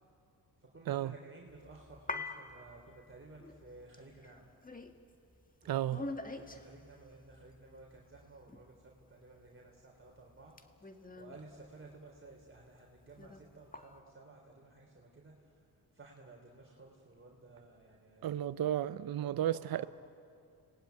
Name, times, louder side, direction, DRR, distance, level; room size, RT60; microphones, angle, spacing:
voice 1, 0.6-4.5 5.6-15.6 15.9-18.6 18.9-19.9, right 3 dB, 30° right, 3.8 m, -55 dB
sound 1, 1.5-9.0 9.5-12.6 12.9-14.0, left 3 dB, 20° left, 1.9 m, -46 dB
voice 2, 5.7-6.0 18.2-19.9, right 11 dB, 60° right, 0.7 m, -33 dB
30.0 x 20.0 x 9.4 m
cardioid pair, 75°, 41 cm